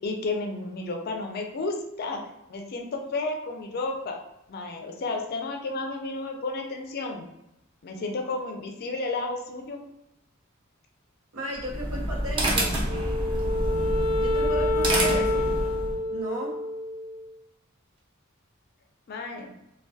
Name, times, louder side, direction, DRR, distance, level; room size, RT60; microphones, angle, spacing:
voice 1, 0.0-2.2 2.5-4.2 4.5-7.3 7.8-9.8 19.1-19.5, left 3 dB, 45° left, 2 dB, 0.4 m, -32 dB
voice 2, 11.3-12.7 14.2-15.4 16.1-16.5, right 2 dB, 90° right, -2 dB, 0.7 m, -34 dB
sound 1, 11.5-16.0, right 1 dB, 25° right, 0.5 m, -28 dB
Wind instrument woodwind instrument, 12.8-17.3, left 1 dB, 50° right, 0.8 m, -28 dB
2.2 x 2.1 x 2.6 m, 0.88 s
head